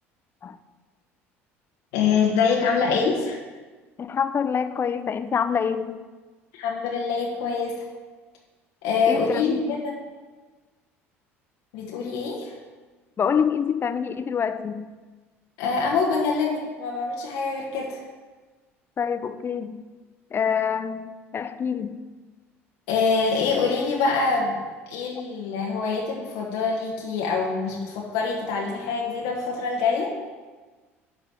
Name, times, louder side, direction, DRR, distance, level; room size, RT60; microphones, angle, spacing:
voice 1, 1.9-3.4 6.5-7.9 8.8-9.9 11.7-12.6 15.6-18.0 22.9-24.6 24.9-30.1, left 5 dB, 65° left, -2 dB, 1.6 m, -25 dB
voice 2, 4.0-6.0 9.1-9.8 13.2-14.9 19.0-19.8 20.3-22.0, left 7 dB, 30° left, 11 dB, 0.7 m, -26 dB
11.0 x 5.1 x 7.7 m, 1.3 s
figure-of-eight pair, 60°, 7 cm